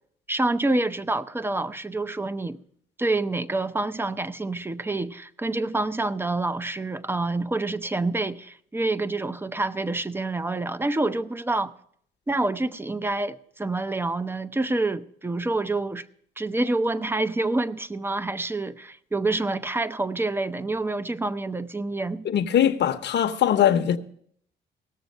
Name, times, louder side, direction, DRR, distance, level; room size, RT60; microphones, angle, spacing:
voice 1, 0.3-2.6 3.0-11.7 12.3-16.0 16.4-22.2, right 2 dB, 10° right, 0.6 m, -27 dB
voice 2, 22.2-24.0, left 10 dB, 60° left, 0.9 m, -21 dB
17.5 x 7.0 x 5.4 m
cardioid pair, 90°, 20 cm